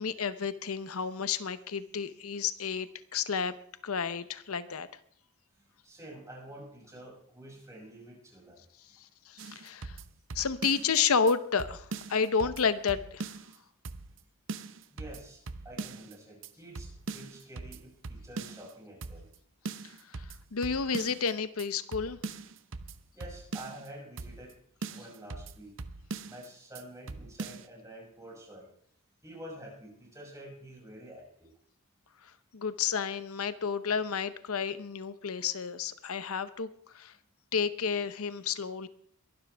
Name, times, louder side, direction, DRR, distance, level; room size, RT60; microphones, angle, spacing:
voice 1, 0.0-3.5 3.8-4.9 9.3-10.0 10.3-13.3 20.1-22.2 32.5-37.1 37.5-38.9, left 6 dB, 90° left, 13 dB, 0.8 m, -31 dB
voice 2, 5.5-8.6 14.9-19.3 23.1-24.5 24.9-25.8 26.3-28.7 29.2-31.5, right 1 dB, 15° right, -3 dB, 6.6 m, -48 dB
sound 1, 9.4-11.0 11.3-11.4 11.6-13.6 13.8-14.2 14.5-16.1 16.4-16.5 16.7-18.7 19.0-19.4 19.6-21.3 21.6-21.7 21.9-23.9 24.2-24.5 24.8-26.5 26.7-26.8 27.1-27.7, right 3 dB, 60° right, 0.8 m, -41 dB
22.0 x 12.0 x 3.4 m, 0.63 s
head